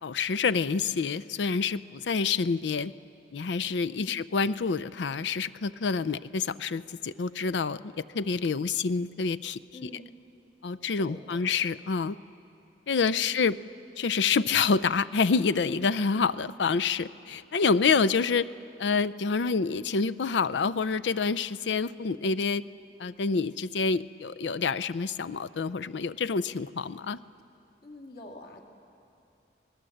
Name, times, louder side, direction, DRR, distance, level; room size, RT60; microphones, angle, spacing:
voice 1, 0.0-2.9 3.3-9.9 10.6-12.2 12.9-13.5 14.0-18.5 18.8-22.6 23.0-27.2, left 5 dB, 85° left, 15 dB, 0.5 m, -27 dB
voice 2, 3.9-4.2 9.7-10.2 11.0-11.4 13.2-13.3 27.8-28.6, left 1 dB, 55° left, 1 dB, 2.2 m, -46 dB
26.5 x 19.0 x 7.8 m, 2.8 s
head